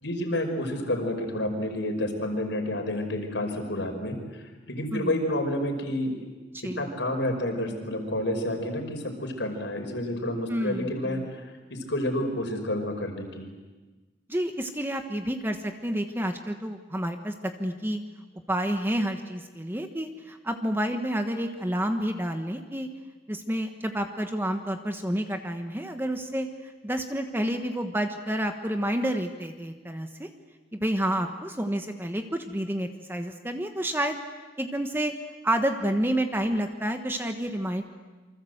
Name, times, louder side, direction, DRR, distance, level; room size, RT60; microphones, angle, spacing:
voice 1, 0.0-6.1 6.6-13.5, left 1 dB, 75° left, 4 dB, 5.2 m, -30 dB
voice 2, 10.5-11.3 14.3-18.0 18.5-22.9 23.3-26.5 26.8-30.3 30.7-34.2 34.6-35.1 35.4-37.8, right 1 dB, 10° right, 6 dB, 1.3 m, -29 dB
27.5 x 25.0 x 8.0 m, 1.2 s
head